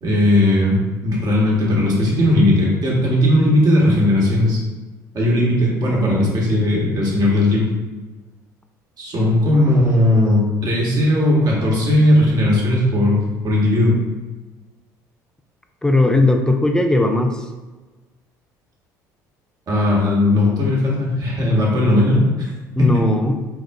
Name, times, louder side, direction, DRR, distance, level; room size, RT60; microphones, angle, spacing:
voice 1, 0.0-4.6 5.1-7.7 9.0-14.0 19.7-22.3 22.8-23.0, left 1 dB, 45° right, -4 dB, 1.5 m, -17 dB
voice 2, 15.8-17.5 22.8-23.5, left 2 dB, 10° left, 4 dB, 0.5 m, -17 dB
4.1 x 2.5 x 3.4 m, 1.2 s
hypercardioid pair, 60°, 9 cm